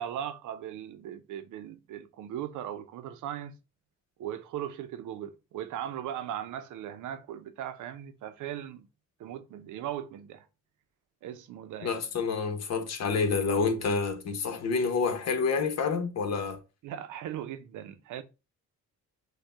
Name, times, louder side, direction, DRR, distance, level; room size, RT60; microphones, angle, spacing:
voice 1, 0.0-3.5 4.2-8.9 9.2-10.5 11.2-12.0 16.8-18.2, right 10 dB, 80° right, 0.7 m, -38 dB
voice 2, 11.8-16.6, left 4 dB, 60° left, 1.1 m, -28 dB
6.5 x 2.3 x 3.4 m
cardioid pair, 90°, 30 cm